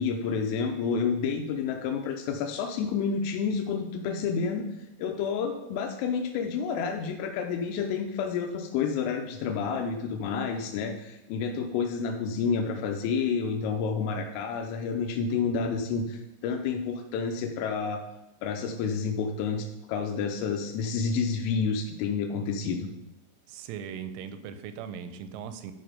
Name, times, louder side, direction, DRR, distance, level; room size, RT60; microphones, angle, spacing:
voice 1, 0.0-4.7 5.0-18.0 18.4-22.9, left 5 dB, 85° left, 4 dB, 3.3 m, -29 dB
voice 2, 23.5-25.7, right 7 dB, 85° right, 10 dB, 3.0 m, -39 dB
11.5 x 4.6 x 5.0 m, 0.92 s
omnidirectional pair, 5.7 m